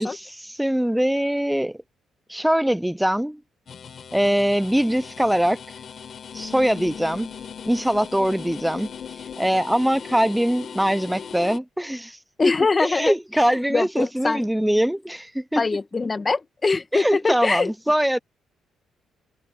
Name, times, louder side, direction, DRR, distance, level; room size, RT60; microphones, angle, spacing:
voice 1, 0.0-1.8 2.3-3.4 4.1-5.6 6.3-7.3 7.6-8.9 9.4-12.2 12.4-12.5 12.8-15.7 16.9-18.2, equal, 5° right, 0.4 m, -22 dB
sound 1, 3.7-11.6, left 7 dB, 50° left, 3.7 m, -38 dB
voice 2, 12.4-14.4 15.6-17.7, left 4 dB, 30° left, 1.5 m, -23 dB
cardioid pair, 90°, 0 cm